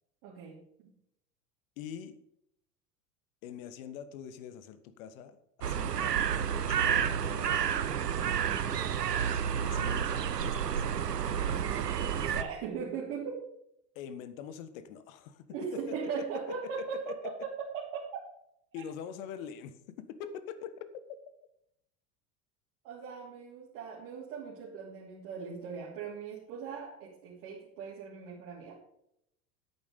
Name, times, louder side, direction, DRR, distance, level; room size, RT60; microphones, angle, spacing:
voice 1, 0.2-0.9 8.1-8.5 11.4-13.4 15.5-18.2 18.7-18.8 22.8-28.8, right 6 dB, 55° right, -6 dB, 3.2 m, -39 dB
voice 2, 1.8-2.1 3.4-6.0 6.3-7.6 9.6-10.8 13.9-15.4 15.7-15.9 16.6-17.3 18.7-21.0, left 8 dB, 60° left, 12 dB, 1.4 m, -44 dB
sound 1, 5.6-12.4, right 8 dB, 85° right, 0.8 m, -30 dB
11.0 x 8.8 x 5.1 m, 0.77 s
figure-of-eight pair, 80°, 47 cm